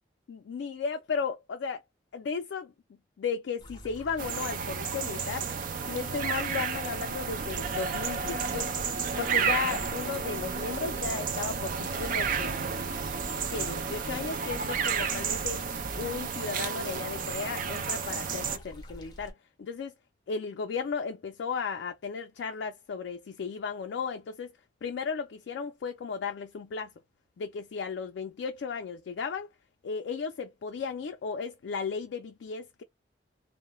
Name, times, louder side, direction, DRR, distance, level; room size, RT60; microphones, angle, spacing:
voice 1, 0.3-1.8 2.1-2.7 3.2-5.5 5.9-8.8 9.2-13.1 13.5-15.6 16.0-19.9 20.3-24.5 24.8-26.9 27.4-29.5 29.8-32.8, left 5 dB, 70° left, 0.3 m, -35 dB
sound 1, 3.6-19.3, left 1 dB, 25° left, 0.6 m, -49 dB
sound 2, 4.2-18.6, right 6 dB, 45° right, 0.4 m, -32 dB
sound 3, 7.1-16.3, equal, 10° right, 0.9 m, -45 dB
2.2 x 2.0 x 2.9 m
head